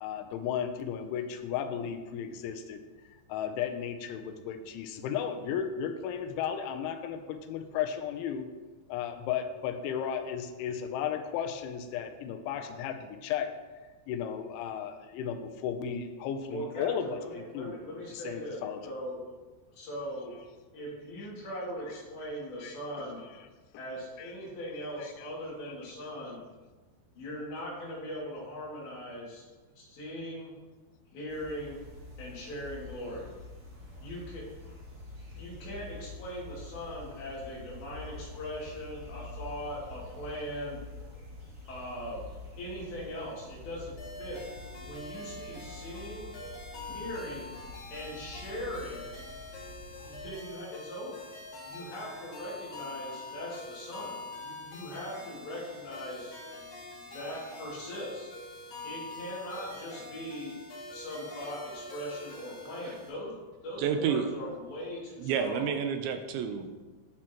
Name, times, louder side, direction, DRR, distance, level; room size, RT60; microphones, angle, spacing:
voice 1, 0.0-2.8 3.3-8.5 8.9-13.6 14.1-17.8 18.1-18.9 21.2-21.7 22.6-23.1 24.2-25.3 25.6-25.7 26.0-26.1, left 8 dB, 85° left, 6 dB, 3.1 m, -35 dB
voice 2, 16.5-19.2 19.7-20.4 20.7-23.2 23.8-26.4 27.2-29.4 29.8-30.5 31.1-31.8 32.2-33.3 34.0-34.4 35.3-40.8 41.7-42.2 42.6-44.4 44.8-46.3 46.9-47.5 47.9-49.1 50.0-51.3 51.6-56.3 57.1-58.3 58.8-60.6 60.9-65.7, equal, 65° left, -6 dB, 4.6 m, -40 dB
sound 1, 31.3-50.3, left 1 dB, 30° right, 1.4 m, -47 dB
sound 2, 44.0-63.1, left 2 dB, 45° left, 3.2 m, -45 dB
voice 3, 63.8-64.3 65.2-66.8, right 7 dB, 80° right, 6 dB, 2.8 m, -30 dB
17.5 x 6.1 x 3.0 m, 1.3 s
omnidirectional pair, 5.4 m